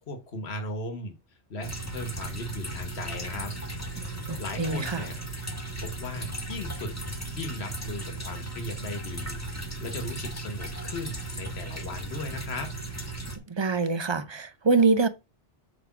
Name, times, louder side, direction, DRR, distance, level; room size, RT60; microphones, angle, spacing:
voice 1, 0.1-3.5 4.4-5.1 5.8-7.0 7.3-9.4 9.8-12.7, left 2 dB, 65° left, 1.6 m, -37 dB
sound 1, 1.6-13.4, right 2 dB, 15° left, 1.3 m, -36 dB
voice 2, 4.0-5.1 13.5-15.1, right 4 dB, 35° right, 0.5 m, -25 dB
8.2 x 3.5 x 5.9 m
omnidirectional pair, 1.2 m